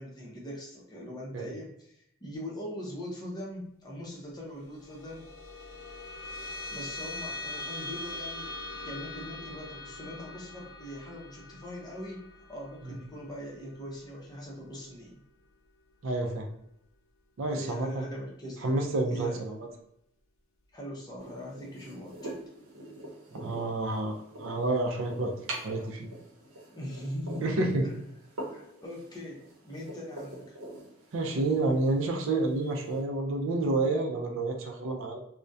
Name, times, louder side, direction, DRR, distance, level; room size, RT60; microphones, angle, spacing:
voice 1, 0.0-5.2 6.7-15.2 17.5-18.8 19.1-19.4 20.7-22.4 26.7-27.5 27.8-28.0 28.5-30.6, equal, 20° left, -3 dB, 0.5 m, -41 dB
sound 1, 4.5-15.3, left 2 dB, 70° left, 0.5 m, -42 dB
voice 2, 16.0-16.4 17.4-18.1 18.6-19.7 23.3-25.3 25.6-26.1 27.4-27.9 31.1-35.2, right 2 dB, 60° right, 3 dB, 0.4 m, -29 dB
sound 2, 21.2-33.0, right 1 dB, 85° right, 0.7 m, -45 dB
2.3 x 2.1 x 2.6 m, 0.76 s
head